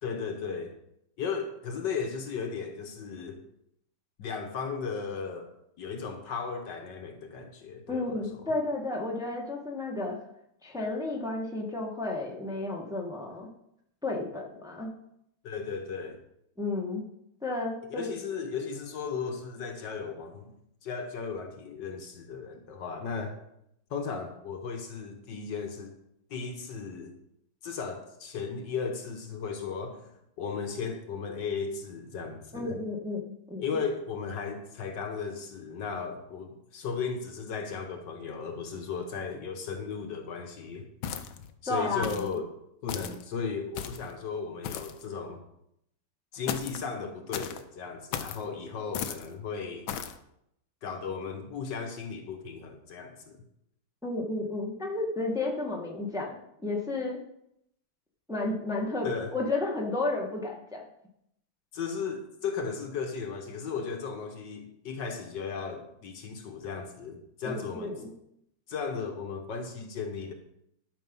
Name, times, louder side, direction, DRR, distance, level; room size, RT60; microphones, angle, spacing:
voice 1, 0.0-0.7 1.2-3.4 4.2-5.5 5.8-8.5 15.4-16.2 17.9-20.5 20.8-23.4 23.9-25.9 26.3-27.1 27.6-30.1 30.4-32.8 33.6-40.9 41.6-42.5 42.8-45.4 46.3-49.9 50.8-53.4 59.0-59.3 61.7-67.9 68.7-70.3, left 5 dB, 65° left, 5 dB, 1.6 m, -36 dB
voice 2, 7.9-10.2 10.6-13.5 14.0-14.9 16.6-17.1 17.4-18.1 32.5-33.2 33.5-33.6 41.7-42.3 54.0-57.2 58.3-60.8 67.4-68.1, left 2 dB, ahead, -1 dB, 1.4 m, -32 dB
sound 1, 41.0-41.5 42.0-42.3 42.9-43.2 43.7-44.1 44.6-45.0 46.5-46.8 47.3-47.6 48.1-48.4 48.9-49.3 49.9-50.2, left 9 dB, 85° left, 1.6 m, -35 dB
12.5 x 6.1 x 5.4 m, 0.77 s
omnidirectional pair, 2.2 m